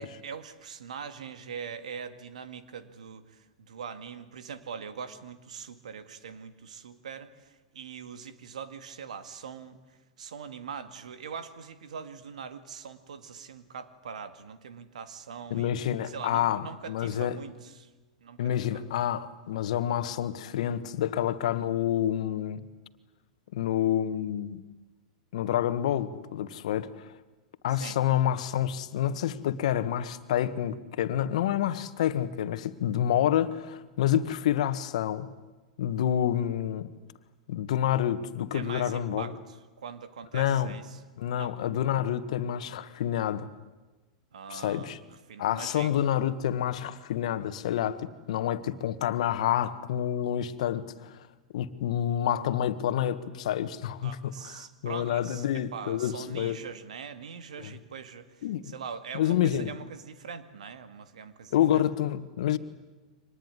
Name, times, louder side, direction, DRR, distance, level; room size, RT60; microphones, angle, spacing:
voice 1, 0.0-15.7 16.0-17.9 18.2-18.8 27.7-28.0 38.5-41.0 41.3-41.6 44.3-45.0 45.3-45.9 54.0-55.5 55.7-61.9, right 6 dB, 85° right, 2.1 m, -42 dB
voice 2, 15.5-17.4 18.4-22.6 23.5-24.6 25.3-27.1 27.6-35.3 35.8-36.9 37.5-39.3 40.3-40.7 41.2-43.5 44.5-45.0 45.4-51.3 51.5-56.6 57.6-57.7 58.4-58.7 59.1-59.7 61.5-62.6, left 10 dB, 70° left, 1.6 m, -28 dB
25.0 x 20.0 x 9.8 m
hypercardioid pair, 115°, 4 cm